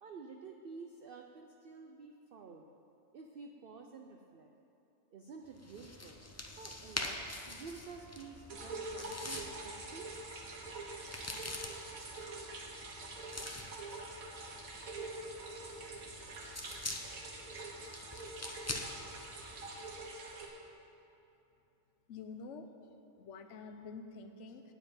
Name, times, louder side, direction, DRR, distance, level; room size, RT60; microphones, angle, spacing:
voice 1, 0.0-2.7 3.1-4.5 5.1-7.2 7.5-10.1, right 4 dB, 50° right, 2 dB, 0.7 m, -51 dB
sound 1, 5.5-20.2, left 2 dB, 15° left, 0.6 m, -46 dB
sound 2, 8.5-20.5, right 2 dB, 85° right, 1.7 m, -45 dB
voice 2, 22.1-22.7 23.2-24.6, left 4 dB, 60° left, 7 dB, 1.1 m, -47 dB
9.3 x 7.8 x 8.9 m, 2.9 s
omnidirectional pair, 1.4 m